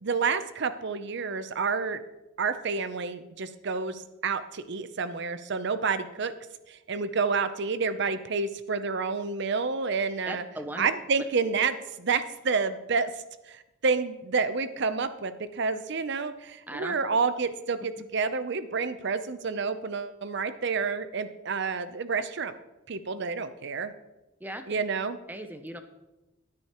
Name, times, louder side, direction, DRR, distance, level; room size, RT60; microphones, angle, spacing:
voice 1, 0.0-2.0 2.4-6.3 6.7-10.4 10.8-13.1 13.5-22.5 22.9-23.9 24.7-25.2, right 5 dB, 60° right, 12 dB, 0.6 m, -29 dB
voice 2, 10.3-10.9 16.7-17.0 24.4-24.8 25.3-25.8, right 1 dB, 10° right, 8 dB, 0.6 m, -38 dB
14.0 x 9.7 x 3.0 m, 0.99 s
head